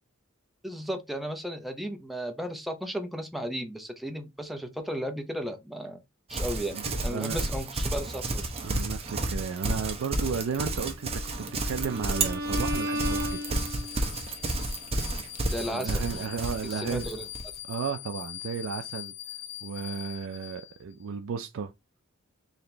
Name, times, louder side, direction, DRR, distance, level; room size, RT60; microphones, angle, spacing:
voice 1, 0.6-6.0 6.3-8.5 15.5-16.0 16.6-17.3, equal, ahead, 0.6 m, -35 dB
Livestock farm animals working animals, 6.3-17.5, right 2 dB, 30° right, 0.8 m, -31 dB
voice 2, 6.7-7.5 8.6-11.1 11.7-13.6 13.9-14.0 15.7-17.1 17.7-19.1 19.6-21.7, right 6 dB, 65° right, 0.4 m, -34 dB
Bowed string instrument, 11.0-14.2, equal, 50° right, 1.2 m, -34 dB
sound 1, 12.5-21.0, left 14 dB, 50° left, 0.7 m, -42 dB
4.2 x 2.9 x 3.3 m
head